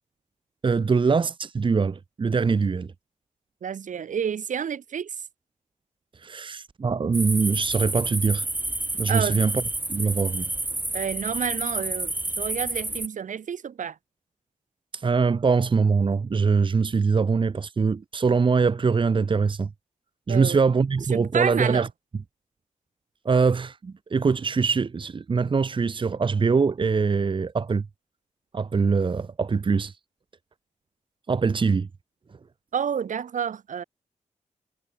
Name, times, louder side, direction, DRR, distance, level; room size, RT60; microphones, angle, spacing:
voice 1, 0.6-2.9 6.2-8.4 8.9-9.5 9.9-10.5 14.9-19.7 20.3-21.9 23.2-27.8 28.5-29.9 31.3-31.9, right 5 dB, 40° right, 1.5 m, -23 dB
voice 2, 3.6-5.1 9.1-9.4 10.9-14.0 20.3-20.6 21.1-21.9 32.7-33.8, right 7 dB, 85° right, 4.4 m, -29 dB
sound 1, 7.1-13.1, right 2 dB, 15° right, 2.4 m, -30 dB
wide cardioid pair, 125°, 13 cm